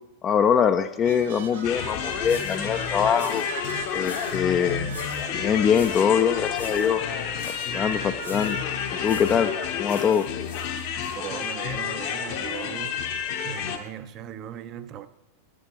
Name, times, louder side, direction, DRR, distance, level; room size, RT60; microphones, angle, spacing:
voice 1, 0.2-3.4 3.9-5.0 5.3-7.0 7.7-8.6 9.0-9.5 9.8-10.3, left 7 dB, 25° left, 0.4 m, -23 dB
sound 1, 1.0-9.7, right 6 dB, 60° right, 1.2 m, -41 dB
sound 2, 1.6-13.8, left 8 dB, 45° left, 0.8 m, -30 dB
sound 3, 1.8-1.9 2.2-2.7 3.1-4.4 4.9-5.3 5.7-6.1 6.5-6.9 7.3-7.7 8.2-8.6 9.0-9.4 9.8-11.1, left 3 dB, 80° left, 1.3 m, -44 dB
voice 2, 11.1-13.0 13.4-15.1, right 10 dB, 35° right, 0.5 m, -38 dB
8.9 x 6.2 x 4.7 m
figure-of-eight pair, 90°, 0 cm